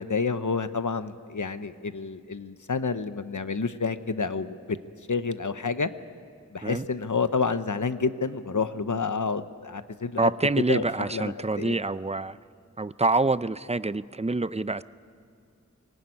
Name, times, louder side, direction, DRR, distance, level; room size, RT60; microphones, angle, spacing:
voice 1, 0.0-4.8 5.1-5.9 6.5-10.3 10.7-11.8, left 4 dB, 90° left, 11 dB, 0.9 m, -29 dB
voice 2, 10.2-12.4 12.8-14.8, right 3 dB, 20° right, 15 dB, 0.6 m, -26 dB
24.5 x 19.0 x 9.7 m, 2.5 s
wide cardioid pair, 40°, 29 cm